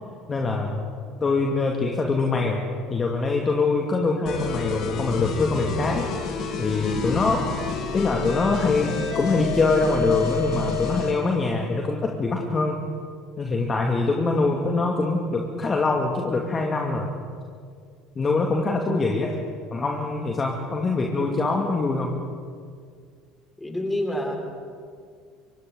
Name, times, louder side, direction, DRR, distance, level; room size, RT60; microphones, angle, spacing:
voice 1, 0.3-0.8 1.2-2.6 2.9-6.1 6.6-7.5 7.9-12.8 13.4-17.1 18.2-19.4 19.7-22.2, left 3 dB, 25° left, 1 dB, 2.3 m, -24 dB
sound 1, 4.3-11.2, left 5 dB, 50° left, 3.3 m, -29 dB
voice 2, 23.6-24.4, left 1 dB, 10° left, 1 dB, 5.0 m, -27 dB
30.0 x 25.5 x 3.9 m, 2.1 s
figure-of-eight pair, 65°, 0 cm